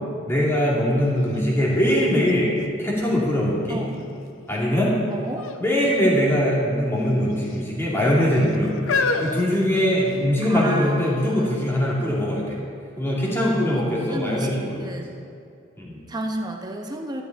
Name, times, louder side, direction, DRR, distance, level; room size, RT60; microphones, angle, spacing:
voice 1, 0.3-2.5 2.8-3.8 4.5-5.0 5.6-12.6 13.0-14.9 15.8-16.0, equal, 10° left, -6 dB, 2.2 m, -22 dB
sound 1, 1.3-1.4 1.8-3.4 4.0-4.5 5.3-5.7 5.9-6.1 7.0-7.6 8.3-10.4 11.1-11.2, left 4 dB, 65° left, 0.7 m, -29 dB
voice 2, 5.1-5.5 10.5-11.5 13.8-15.1 16.1-17.2, right 1 dB, 20° right, 2 dB, 0.8 m, -32 dB
12.0 x 12.0 x 4.0 m, 2.5 s
head